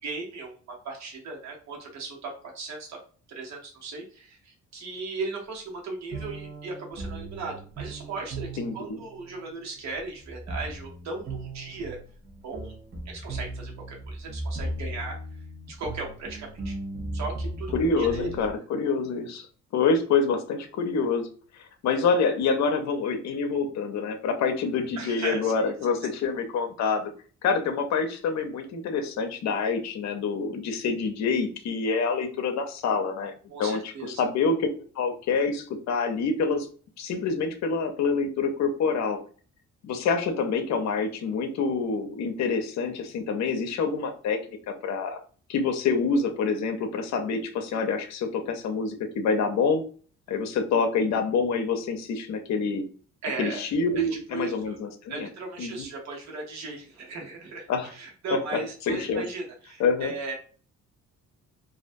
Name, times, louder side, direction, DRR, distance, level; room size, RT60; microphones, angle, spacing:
voice 1, 0.0-3.0 3.3-8.5 8.7-12.0 12.4-12.7 13.1-15.2 15.7-16.8 17.1-18.3 25.0-25.7 33.5-34.2 53.2-53.7 53.9-54.8 55.1-60.3, right 3 dB, 65° right, 0 dB, 0.9 m, -37 dB
sound 1, 6.1-18.5, right 2 dB, 35° right, 0.7 m, -37 dB
voice 2, 8.6-9.0 17.7-19.5 19.7-21.3 21.5-27.1 27.4-33.3 33.6-33.8 34.1-34.7 35.0-36.7 37.0-39.2 39.8-45.2 45.5-49.8 50.3-52.8 53.4-55.3 55.6-55.7 57.7-57.9 58.9-59.2 59.8-60.1, left 4 dB, 65° left, 6 dB, 0.6 m, -26 dB
2.4 x 2.1 x 2.5 m, 0.41 s
cardioid pair, 90°, 30 cm